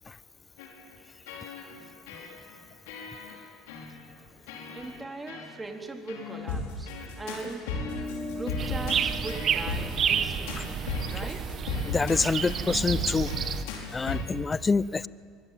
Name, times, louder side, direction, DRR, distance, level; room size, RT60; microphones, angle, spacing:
sound 1, 0.6-0.9 1.3-2.5 2.9-3.4 3.7-3.9 4.5-5.0 5.3-5.5 6.1-14.2, left 4 dB, 80° left, 5.1 m, -36 dB
voice 1, 4.7-7.8 8.3-11.6, right 3 dB, 15° right, 3 dB, 3.6 m, -40 dB
sound 2, 7.7-12.5, left 2 dB, 5° left, 5.5 m, -42 dB
sound 3, 8.6-13.6, right 8 dB, 45° right, 1.6 m, -30 dB
voice 2, 11.8-13.3 13.9-15.1, left 4 dB, 25° left, 19 dB, 0.7 m, -26 dB
24.5 x 22.5 x 9.3 m, 2.2 s
hypercardioid pair, 80°, 0 cm